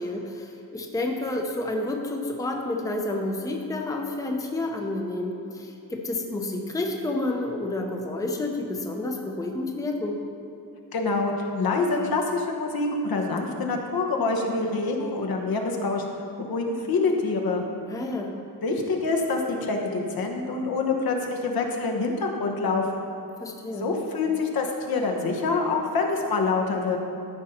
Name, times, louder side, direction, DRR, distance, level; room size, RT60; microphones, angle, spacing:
voice 1, 0.0-10.2 17.9-18.4 23.4-23.9, left 2 dB, 10° left, 1 dB, 0.7 m, -30 dB
voice 2, 10.9-16.0 16.5-17.6 18.6-23.1 23.8-27.0, left 3 dB, 65° left, 1 dB, 1.2 m, -26 dB
13.5 x 5.3 x 4.3 m, 2.5 s
wide cardioid pair, 155°, 38 cm